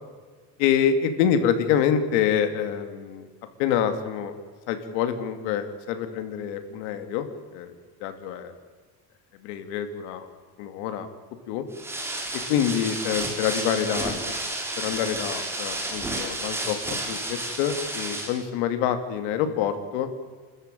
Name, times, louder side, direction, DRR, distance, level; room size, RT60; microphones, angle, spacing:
voice 1, 0.6-3.3 3.6-4.3 4.7-7.3 7.5-7.7 8.0-8.5 9.4-10.3 10.6-11.1 11.5-11.6 12.5-14.4 14.8-16.8 17.1-20.1, left 8 dB, 90° left, 8 dB, 2.5 m, -26 dB
sound 1, 11.7-18.4, right 1 dB, 10° right, 4.2 m, -31 dB
28.0 x 14.0 x 9.1 m, 1.5 s
cardioid pair, 140°, 31 cm